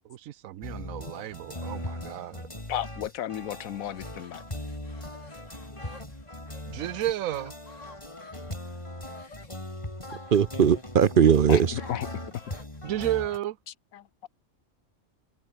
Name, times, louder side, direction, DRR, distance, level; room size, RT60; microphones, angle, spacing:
voice 1, 0.1-2.4 6.7-7.5 12.8-13.6, right 13 dB, 80° right, 1.1 m, -32 dB
sound 1, 0.6-13.4, left 1 dB, 20° left, 4.1 m, -39 dB
voice 2, 2.7-4.4 11.5-12.1 12.3-12.4 13.9-14.3, left 11 dB, 90° left, 1.3 m, -34 dB
sound 2, 3.7-7.0 7.4-9.5 10.1-11.1 11.8-12.8, left 3 dB, 65° left, 3.3 m, -51 dB
voice 3, 10.3-11.8, right 8 dB, 50° right, 0.7 m, -20 dB
omnidirectional pair, 1.4 m